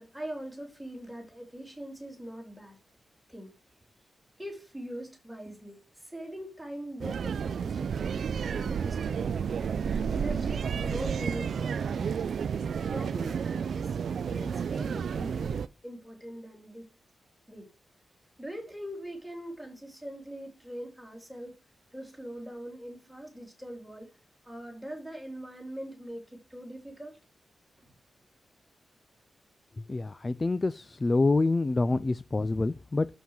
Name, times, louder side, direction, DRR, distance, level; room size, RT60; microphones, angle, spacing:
voice 1, 0.0-2.8 3.3-3.6 4.4-9.6 10.1-12.3 12.7-14.0 14.3-16.9 17.5-17.7 18.4-21.6 21.9-24.1 24.4-27.2 27.8-27.9, right 1 dB, ahead, 3.3 m, -42 dB
sound 1, 7.0-15.7, right 7 dB, 65° right, 0.4 m, -31 dB
voice 2, 29.8-33.1, left 3 dB, 25° left, 0.4 m, -27 dB
7.1 x 5.8 x 6.4 m
wide cardioid pair, 160°, 0 cm